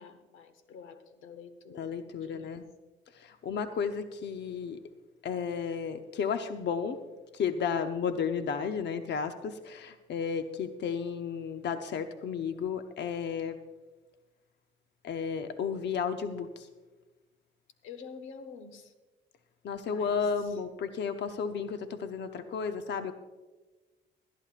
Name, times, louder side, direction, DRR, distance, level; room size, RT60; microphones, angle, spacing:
voice 1, 0.0-1.9 2.2-2.6 17.8-18.9 19.8-20.6, left 6 dB, 90° left, 9 dB, 1.1 m, -48 dB
voice 2, 1.7-2.6 3.1-4.8 5.2-7.0 7.3-13.6 15.0-16.7 19.6-23.1, left 6 dB, 60° left, 8 dB, 0.7 m, -33 dB
20.0 x 12.5 x 2.5 m, 1.2 s
cardioid pair, 90°, 20 cm